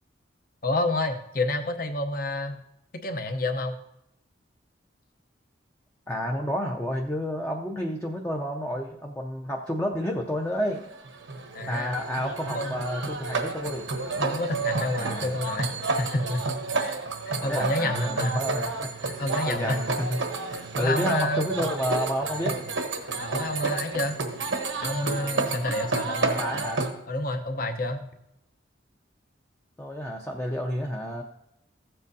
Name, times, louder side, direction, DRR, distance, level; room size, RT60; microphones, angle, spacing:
voice 1, 0.6-2.6 2.9-3.8 11.5-11.9 12.5-12.8 14.2-16.5 16.7-17.0 17.2-18.6 19.0-19.8 20.5-21.5 23.2-24.2 24.8-26.4 27.1-28.1, left 2 dB, 50° left, 7 dB, 0.8 m, -29 dB
voice 2, 6.1-10.8 11.7-13.9 15.0-15.3 17.4-18.8 19.0-20.2 20.8-22.5 25.8-26.9 29.8-31.2, equal, 10° left, 0 dB, 0.5 m, -30 dB
sound 1, 10.8-26.9, right 3 dB, 80° right, 1.0 m, -30 dB
14.5 x 7.7 x 2.7 m, 0.82 s
head